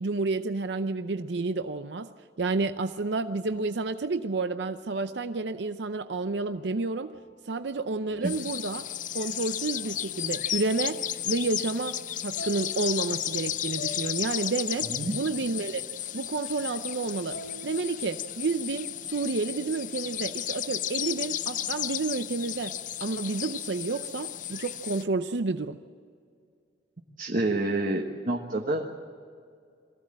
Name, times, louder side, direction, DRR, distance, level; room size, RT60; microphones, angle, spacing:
voice 1, 0.0-2.1 2.4-7.1 7.4-8.8 9.1-15.8 16.1-22.7 23.0-25.8, right 3 dB, 70° right, 10 dB, 0.6 m, -30 dB
sound 1, 3.5-5.6 6.5-9.9 12.4-18.4, left 2 dB, 65° left, 2.8 m, -48 dB
sound 2, 8.2-25.0, left 11 dB, 45° left, 0.5 m, -34 dB
voice 2, 27.2-28.9, right 2 dB, 50° right, 1 dB, 1.3 m, -28 dB
23.0 x 15.5 x 8.8 m, 2.3 s
head